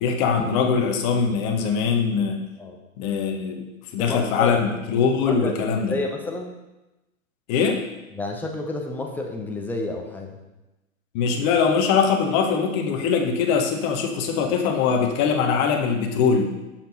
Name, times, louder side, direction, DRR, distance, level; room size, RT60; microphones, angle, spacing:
voice 1, 0.0-2.4 3.0-5.9 7.5-7.8 11.1-16.5, left 6 dB, 30° left, 3 dB, 1.2 m, -22 dB
voice 2, 4.0-4.6 5.3-6.5 8.1-10.4, left 2 dB, 5° left, 1 dB, 0.7 m, -30 dB
7.0 x 5.7 x 5.3 m, 1.0 s
figure-of-eight pair, 115°, 41 cm